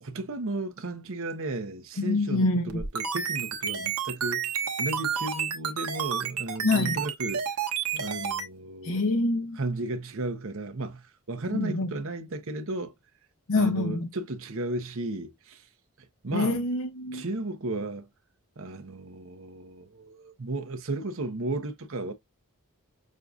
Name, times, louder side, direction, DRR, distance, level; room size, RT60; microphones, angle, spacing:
voice 1, 0.0-7.4 7.9-9.0 9.5-12.9 13.5-15.7 16.2-16.6 17.1-18.1 18.6-22.1, right 2 dB, 60° right, 0.9 m, -34 dB
voice 2, 2.0-2.8 6.6-7.0 8.8-9.6 11.5-11.9 13.5-14.1 16.3-17.2, left 2 dB, 65° left, 0.7 m, -26 dB
sound 1, 2.7-8.5, right 7 dB, 80° right, 1.1 m, -30 dB
6.5 x 2.6 x 2.4 m
head